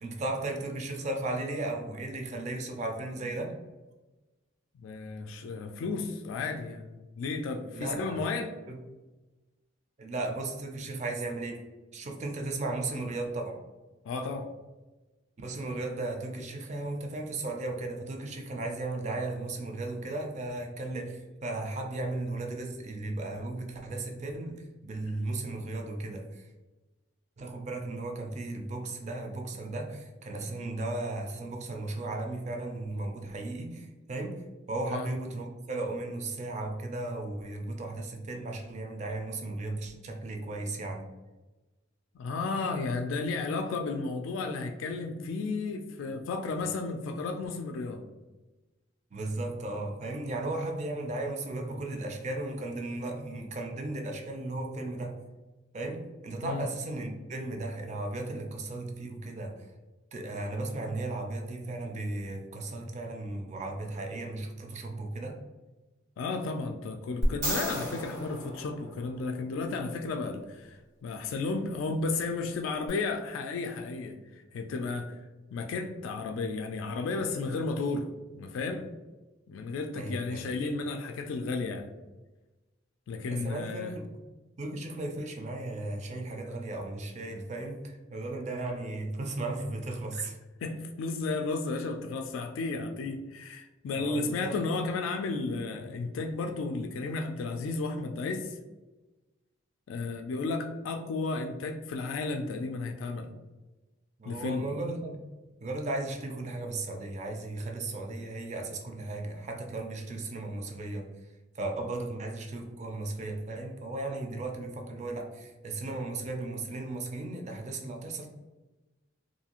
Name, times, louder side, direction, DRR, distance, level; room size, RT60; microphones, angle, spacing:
voice 1, 0.0-3.6 7.7-8.2 8.7-8.8 10.0-11.6 11.9-13.6 15.4-26.5 27.4-34.4 34.7-41.1 49.1-55.2 55.7-59.6 60.1-65.4 79.9-80.5 83.3-84.0 84.6-90.4 93.9-94.6 104.2-105.2 105.6-111.1 111.6-118.3, right 2 dB, 35° right, 3 dB, 0.4 m, -35 dB
voice 2, 4.8-8.5 14.0-14.5 34.9-35.1 42.1-48.0 56.4-56.6 66.2-75.2 75.5-78.9 79.5-81.9 83.1-84.0 90.1-90.3 90.6-98.6 99.9-103.3 104.3-104.7, left 3 dB, 90° left, 5 dB, 0.3 m, -33 dB
sound 1, 67.2-69.5 72.9-73.0, right 1 dB, 90° right, 1.5 m, -33 dB
2.6 x 2.4 x 2.8 m, 1.1 s
head